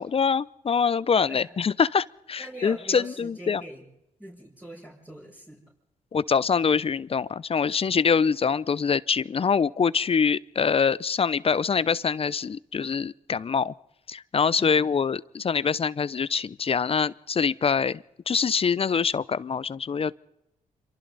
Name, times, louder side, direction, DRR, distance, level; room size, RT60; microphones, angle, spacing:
voice 1, 0.0-3.6 6.1-13.7 14.1-20.1, left 6 dB, 45° left, 0.7 m, -24 dB
voice 2, 2.4-3.8 4.2-5.6 14.6-14.9, right 1 dB, 10° right, 6.3 m, -42 dB
27.0 x 24.0 x 4.1 m
cardioid pair, 70°, 14 cm